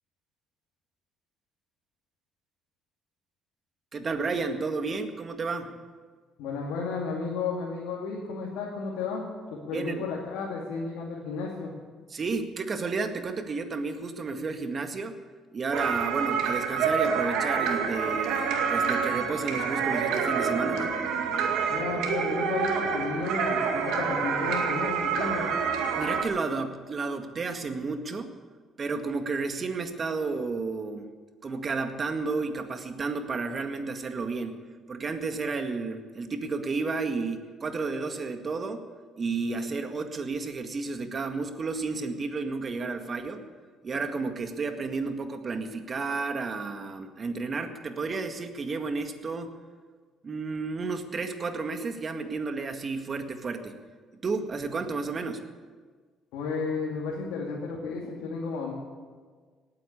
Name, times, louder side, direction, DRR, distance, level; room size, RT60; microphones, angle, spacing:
voice 1, 3.9-5.8 9.7-10.0 12.1-15.2 15.5-20.9 25.9-28.3 28.8-31.1 31.4-34.6 34.9-38.9 39.2-43.4 43.8-49.5 50.2-53.8 54.1-55.4, right 4 dB, 40° right, 6 dB, 1.9 m, -32 dB
voice 2, 6.4-9.2 9.5-11.7 21.7-25.5 56.3-58.7, left 4 dB, 85° left, -3 dB, 2.6 m, -33 dB
sound 1, 15.7-26.2, right 6 dB, 80° right, 2.1 m, -27 dB
18.5 x 8.7 x 8.6 m, 1.5 s
supercardioid pair, 70°, 0 cm